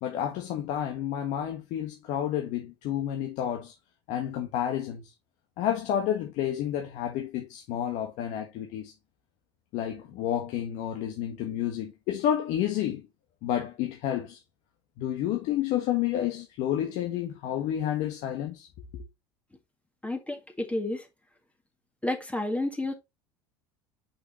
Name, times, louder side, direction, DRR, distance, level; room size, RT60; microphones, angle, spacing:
voice 1, 0.0-3.7 4.1-5.1 5.6-8.9 9.7-13.0 13.4-14.4 15.0-18.7 18.9-19.0, left 10 dB, 60° left, 1.4 m, -30 dB
voice 2, 20.0-21.1 22.0-22.9, left 1 dB, 10° left, 1.9 m, -30 dB
6.1 x 6.0 x 3.1 m
hypercardioid pair, 85°, 14 cm